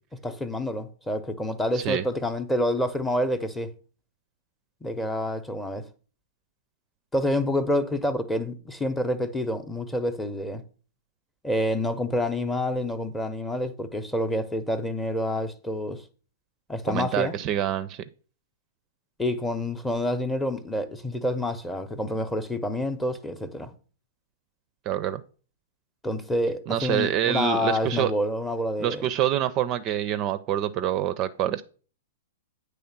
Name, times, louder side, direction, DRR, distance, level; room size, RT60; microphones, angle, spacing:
voice 1, 0.2-3.7 4.8-5.8 7.1-10.6 11.4-16.0 16.7-17.3 19.2-23.7 26.0-29.0, left 1 dB, 10° left, 0.7 m, -28 dB
voice 2, 16.9-18.0 24.9-25.2 26.7-28.1 28.8-31.6, right 11 dB, 35° right, 0.4 m, -26 dB
8.6 x 3.3 x 5.9 m
hypercardioid pair, 110°, 0 cm